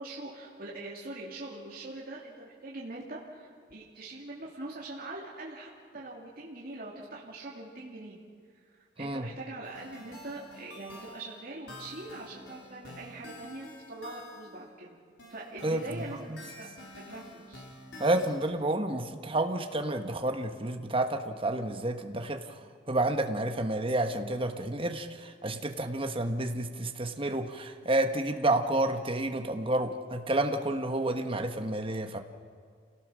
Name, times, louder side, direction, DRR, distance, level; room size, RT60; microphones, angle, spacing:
voice 1, 0.0-8.2 8.6-15.0 15.3-16.7 16.9-17.6, right 2 dB, 55° right, -5 dB, 2.7 m, -43 dB
sound 1, 9.6-14.6 15.2-18.5, left 1 dB, 80° left, 4.4 m, -49 dB
voice 2, 18.0-22.4 22.9-32.2, right 1 dB, 30° right, 5 dB, 1.4 m, -30 dB
28.5 x 17.5 x 6.3 m, 2.1 s
head